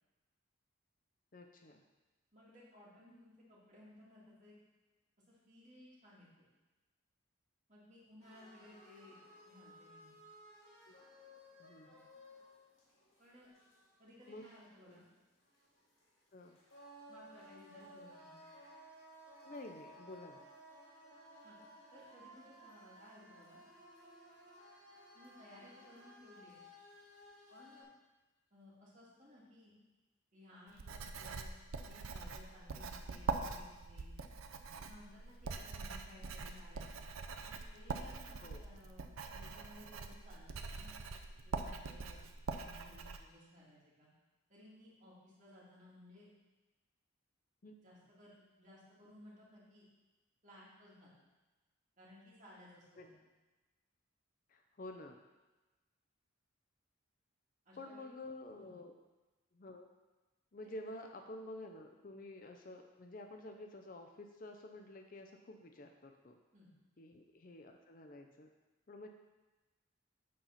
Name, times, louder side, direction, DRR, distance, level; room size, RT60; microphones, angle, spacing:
voice 1, 1.3-1.8 10.9-11.0 11.6-12.1 14.3-14.5 14.9-15.0 16.3-16.6 19.4-20.4 38.4-38.7 47.6-47.9 53.0-53.1 54.5-55.2 57.8-58.9 59.5-59.9 60.5-66.4 67.0-68.5 68.9-69.1, left 1 dB, 40° left, 4 dB, 0.5 m, -50 dB
voice 2, 2.3-4.6 5.3-6.5 7.7-9.2 9.4-10.2 13.2-13.5 14.0-15.0 17.1-18.3 21.4-21.6 21.9-23.6 25.1-26.6 27.5-27.9 28.5-29.7 30.3-31.5 31.8-34.2 34.8-36.9 37.5-40.9 41.4-42.2 42.5-44.1 44.5-46.3 47.8-49.9 50.4-51.1 52.0-53.2 57.7-58.1 58.5-58.8 66.5-66.7, left 1 dB, 35° right, -7 dB, 2.3 m, -59 dB
sound 1, 8.2-27.8, equal, 80° left, 2.3 m, -58 dB
Writing, 30.7-43.2, right 4 dB, 85° right, 0.6 m, -43 dB
8.4 x 4.1 x 5.7 m, 1.2 s
head